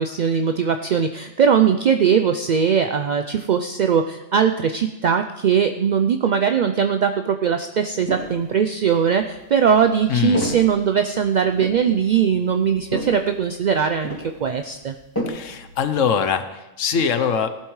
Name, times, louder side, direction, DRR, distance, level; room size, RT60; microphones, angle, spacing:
voice 1, 0.0-15.0, right 7 dB, 65° right, 7 dB, 0.4 m, -20 dB
sound 1, 7.9-8.5 9.0-16.1, left 1 dB, 15° left, 2.6 m, -33 dB
voice 2, 10.1-10.6 15.3-17.5, left 6 dB, 75° left, 10 dB, 1.2 m, -22 dB
18.0 x 11.5 x 3.2 m, 1.0 s
omnidirectional pair, 1.3 m